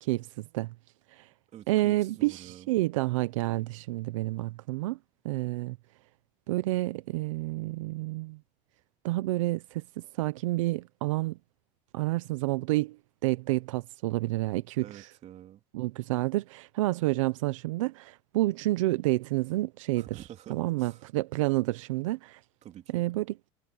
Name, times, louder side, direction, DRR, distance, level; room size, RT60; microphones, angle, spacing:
voice 1, 0.0-0.7 1.1-1.3 1.7-5.0 5.2-5.8 6.5-8.4 9.0-11.4 11.9-15.1 15.7-20.1 20.5-22.4 22.9-23.3, right 18 dB, 85° right, 0.8 m, -29 dB
voice 2, 1.5-2.7 14.8-15.6 20.0-21.0 22.6-23.1, right 12 dB, 45° right, 3.2 m, -48 dB
supercardioid pair, 110°, 16 cm